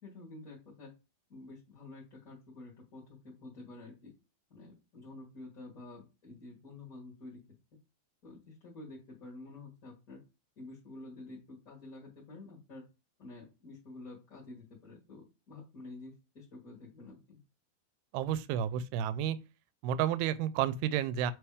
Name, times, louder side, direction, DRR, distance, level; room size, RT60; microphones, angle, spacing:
voice 1, 0.0-0.9 1.3-4.1 4.5-7.4 8.2-10.2 10.5-12.8 13.2-17.4, left 2 dB, 35° left, 1.5 m, -49 dB
voice 2, 18.1-19.4 19.8-21.3, right 10 dB, 85° right, 2.5 m, -31 dB
7.8 x 3.4 x 4.9 m
omnidirectional pair, 4.5 m